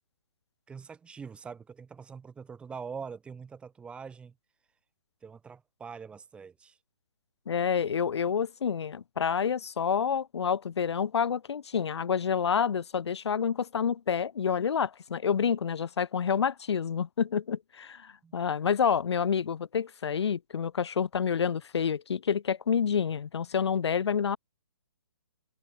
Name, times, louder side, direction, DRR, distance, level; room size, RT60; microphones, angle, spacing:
voice 1, 0.7-4.3 5.2-6.8 18.2-18.3, right 6 dB, 5° right, 1.3 m, -43 dB
voice 2, 7.5-24.4, left 7 dB, 80° left, 0.6 m, -28 dB
hypercardioid pair, 150°, 14 cm